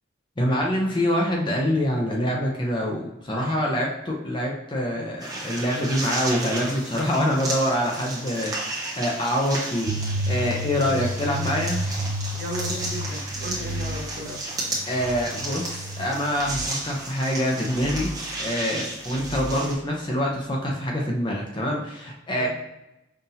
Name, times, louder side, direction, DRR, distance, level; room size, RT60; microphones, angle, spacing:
voice 1, 0.4-10.0 10.3-11.8 14.9-18.1 18.4-22.5, equal, 25° left, -1 dB, 0.6 m, -25 dB
sound 1, 5.2-19.7, right 2 dB, 20° right, 0.9 m, -33 dB
sound 2, 9.8-16.7, equal, 70° right, 0.3 m, -32 dB
voice 2, 10.8-11.1 12.3-14.4 22.4-22.5, equal, 45° right, -3 dB, 1.0 m, -35 dB
sound 3, 13.2-14.2 14.9-15.3 16.3-16.7 17.6-18.3 19.0-19.7, equal, 75° left, 1.0 m, -37 dB
5.5 x 2.5 x 2.7 m, 0.92 s
head